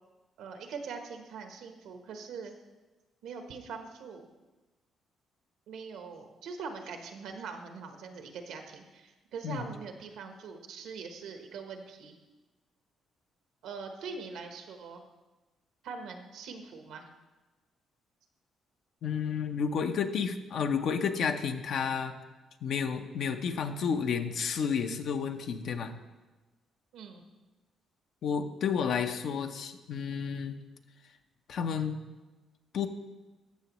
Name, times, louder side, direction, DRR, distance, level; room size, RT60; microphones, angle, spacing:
voice 1, 0.4-2.5 3.2-4.3 5.7-12.2 13.6-15.0 15.8-17.0 26.9-27.2, right 5 dB, 85° right, 5 dB, 1.0 m, -42 dB
voice 2, 19.0-22.2 22.6-25.9 28.2-30.6 31.5-32.0 32.7-32.9, left 6 dB, 70° left, 7 dB, 0.7 m, -31 dB
14.0 x 6.7 x 3.0 m, 1.2 s
cardioid pair, 90°, 0 cm